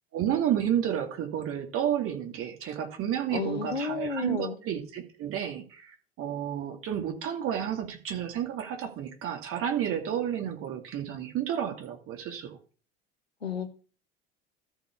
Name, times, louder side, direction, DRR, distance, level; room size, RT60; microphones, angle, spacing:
voice 1, 0.1-12.6, right 10 dB, 45° right, 5 dB, 2.6 m, -31 dB
voice 2, 3.3-4.6 13.4-13.7, left 5 dB, 85° left, 8 dB, 1.3 m, -32 dB
13.5 x 4.7 x 5.9 m, 0.38 s
figure-of-eight pair, 65°, 30 cm